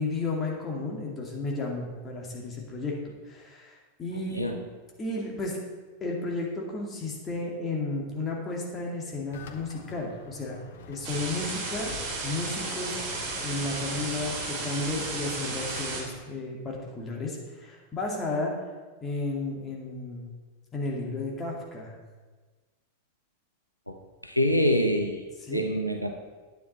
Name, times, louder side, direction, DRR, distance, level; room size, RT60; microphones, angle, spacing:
voice 1, 0.0-3.0 3.3-4.5 5.0-5.6 6.0-10.6 10.9-11.9 12.2-13.0 13.4-18.5 19.0-20.3 20.7-21.9 25.4-25.7, left 2 dB, 20° left, -2 dB, 2.3 m, -33 dB
sound 1, 9.3-16.1, left 5 dB, 55° left, 1.0 m, -45 dB
sound 2, 11.0-16.0, right 3 dB, 40° right, 3.5 m, -34 dB
voice 2, 24.2-25.2 25.5-26.1, equal, 90° left, 4 dB, 0.8 m, -25 dB
9.6 x 9.4 x 4.3 m, 1.3 s
figure-of-eight pair, 90°, 0 cm